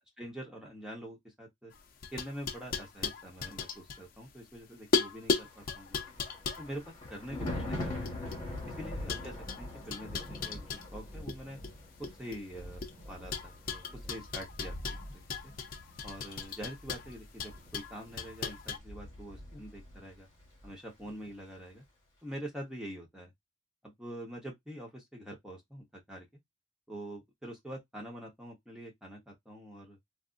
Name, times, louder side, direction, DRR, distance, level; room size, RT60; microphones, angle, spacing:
voice 1, 0.2-1.7 2.1-6.0 6.6-8.2 8.7-11.6 12.2-15.5 16.0-20.3 20.6-21.8 22.2-23.3 23.8-26.3 26.9-30.0, right 1 dB, 5° right, 1.0 m, -45 dB
sound 1, 1.7-4.5 4.9-8.6 9.1-11.4 11.6-12.9 13.3-18.8, left 4 dB, 45° left, 0.5 m, -36 dB
Thunder, 5.5-20.1 20.4-20.7, left 1 dB, 20° left, 1.6 m, -43 dB
3.3 x 2.5 x 2.5 m
head